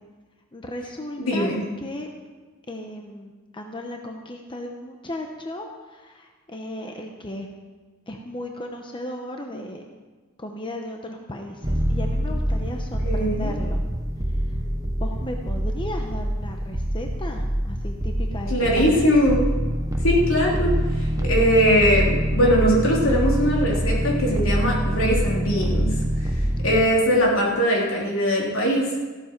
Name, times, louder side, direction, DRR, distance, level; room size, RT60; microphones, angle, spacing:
voice 1, 0.5-1.5 1.8-2.1 2.7-7.5 8.1-9.8 10.4-13.8 14.5-14.6 15.0-19.1, left 1 dB, 25° left, 3 dB, 0.9 m, -35 dB
voice 2, 1.2-1.6 13.0-13.5 18.5-19.4 20.0-25.9 26.6-28.9, equal, 75° left, -3 dB, 3.3 m, -21 dB
sound 1, 11.6-26.8, equal, 15° right, 1.0 m, -25 dB
14.5 x 12.5 x 4.6 m, 1.3 s
head